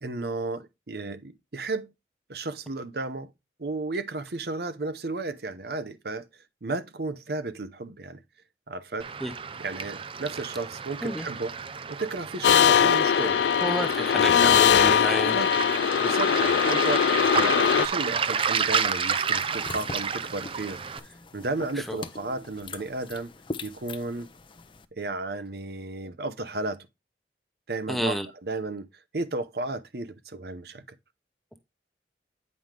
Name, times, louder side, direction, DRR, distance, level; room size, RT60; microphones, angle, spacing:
voice 1, 0.0-1.9 2.3-3.3 3.6-6.3 6.6-8.2 8.7-9.1 9.6-11.6 11.9-13.4 15.3-15.5 16.0-23.3 23.6-24.3 24.9-26.9 27.7-28.9 29.1-31.0, right 3 dB, 60° right, 0.8 m, -33 dB
Waves surf, 9.0-21.0, right 6 dB, 30° right, 0.5 m, -31 dB
sound 1, 12.4-17.9, left 8 dB, 75° left, 0.3 m, -21 dB
voice 2, 13.6-15.4 21.8-22.0 27.9-28.3, equal, ahead, 0.8 m, -30 dB
sound 2, 19.2-24.8, left 3 dB, 30° left, 0.6 m, -42 dB
9.1 x 5.4 x 3.3 m
head